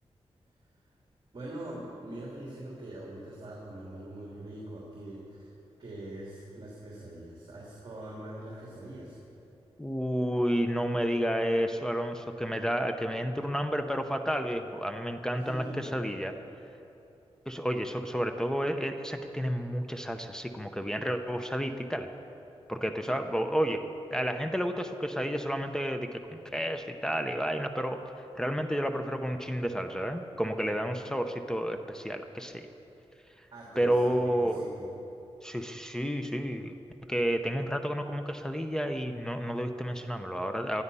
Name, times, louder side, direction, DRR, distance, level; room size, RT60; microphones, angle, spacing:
voice 1, 1.3-5.5 5.8-9.2 15.3-15.9 33.5-34.9, right 1 dB, 45° right, -4 dB, 3.1 m, -42 dB
voice 2, 9.8-16.3 17.5-22.1 22.7-28.0 28.4-32.7 33.8-34.7 35.4-36.7 37.1-40.8, equal, 5° left, 6 dB, 0.7 m, -31 dB
19.5 x 13.0 x 5.6 m, 2.9 s
wide cardioid pair, 125°, 11 cm